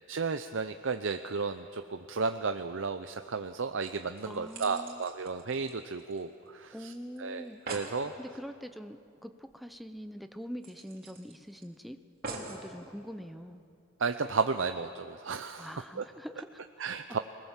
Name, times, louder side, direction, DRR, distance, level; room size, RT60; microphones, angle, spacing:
voice 1, 0.1-6.9 7.2-8.1 14.0-16.0 16.8-17.2, right 4 dB, 70° right, 8 dB, 0.6 m, -33 dB
sound 1, 3.8-6.5 6.7-6.8 7.2-7.3 7.4-8.0 9.5-9.6 9.9-10.0 10.6-11.6 12.2-12.6 13.4-13.5, right 3 dB, 45° right, 3.4 m, -44 dB
voice 2, 4.3-5.0 6.7-7.6 8.0-12.0 12.2-13.6 15.6-16.6 17.1-17.2, equal, ahead, 8 dB, 0.8 m, -44 dB
26.0 x 20.0 x 7.4 m, 2.6 s
head